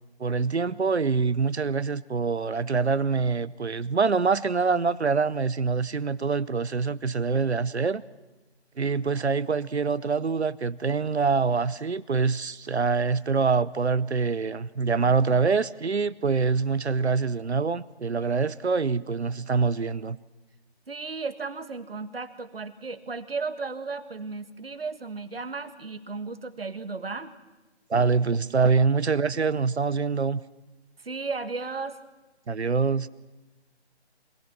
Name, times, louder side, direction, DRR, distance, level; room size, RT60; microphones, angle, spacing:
voice 1, 0.2-8.0 8.8-20.2 27.9-30.4 32.5-33.1, right 5 dB, 75° right, 18 dB, 0.9 m, -25 dB
voice 2, 20.9-27.3 31.0-32.0, right 4 dB, 60° right, 10 dB, 1.7 m, -34 dB
25.5 x 20.0 x 6.0 m, 1.1 s
figure-of-eight pair, 155°, 33 cm